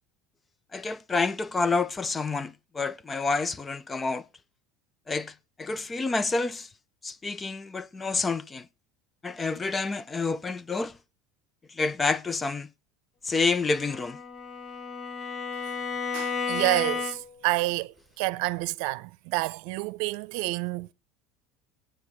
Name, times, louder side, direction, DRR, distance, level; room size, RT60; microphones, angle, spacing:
voice 1, 0.7-4.2 5.1-6.7 7.0-8.7 9.2-11.0 11.7-12.7 13.2-14.2, left 4 dB, 20° left, 0.7 m, -28 dB
Bowed string instrument, 13.6-17.5, left 5 dB, 40° left, 1.7 m, -33 dB
voice 2, 16.1-20.9, right 20 dB, 70° right, 0.7 m, -29 dB
19.5 x 9.0 x 4.7 m
supercardioid pair, 100°, 0 cm